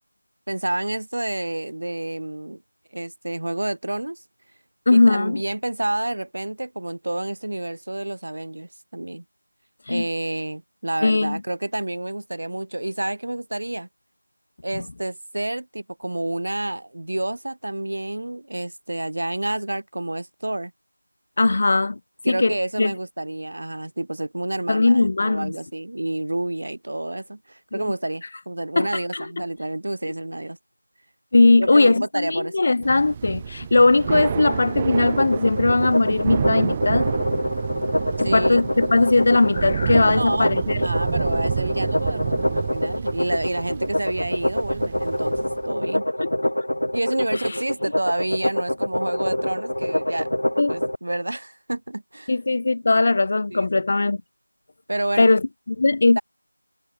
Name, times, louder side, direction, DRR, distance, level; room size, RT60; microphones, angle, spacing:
voice 1, 0.5-2.6 2.9-4.2 4.9-9.2 9.9-13.9 14.6-20.7 22.2-30.6 31.6-32.5 38.2-38.7 40.2-40.5 40.8-45.3 45.6-46.0 46.9-50.3 50.7-52.3 53.5-53.8 54.9-55.3, right 1 dB, 55° right, 5.1 m, -29 dB
voice 2, 4.9-5.4 9.9-10.0 11.0-11.4 14.7-14.8 21.4-22.0 22.3-22.9 24.7-25.5 27.7-27.9 28.8-29.3 31.3-37.2 38.2-40.8 46.2-46.5 47.5-47.6 50.6-50.7 52.3-54.2 55.2-56.2, left 3 dB, 35° left, 0.9 m, -19 dB
Thunder / Rain, 32.8-45.7, right 7 dB, 15° right, 3.7 m, -29 dB
sound 1, 35.0-51.0, left 1 dB, 80° left, 5.1 m, -25 dB
figure-of-eight pair, 170°, 0 cm